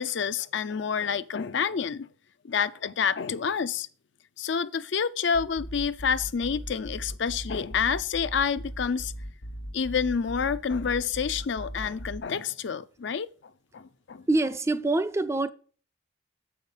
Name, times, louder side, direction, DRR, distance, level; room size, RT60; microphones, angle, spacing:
voice 1, 0.0-2.1 2.4-3.9 4.4-9.1 9.7-13.3 13.7-14.2, left 6 dB, 65° left, 0.5 m, -28 dB
sound 1, 5.3-12.2, equal, 90° left, 1.2 m, -39 dB
voice 2, 14.3-15.5, right 2 dB, 15° right, 0.3 m, -25 dB
7.2 x 5.7 x 5.4 m
head